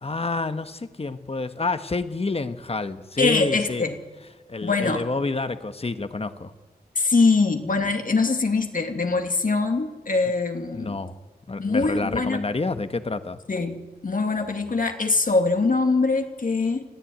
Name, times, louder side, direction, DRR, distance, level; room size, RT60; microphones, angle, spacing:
voice 1, 0.0-3.8 4.5-6.5 10.7-11.2 11.5-13.4, left 3 dB, 35° left, 10 dB, 1.3 m, -28 dB
voice 2, 3.2-4.0 4.6-5.0 7.0-11.0 11.6-12.4 13.5-16.8, left 3 dB, 55° left, 5 dB, 2.4 m, -23 dB
25.0 x 14.5 x 9.3 m, 1.3 s
wide cardioid pair, 90°, 17 cm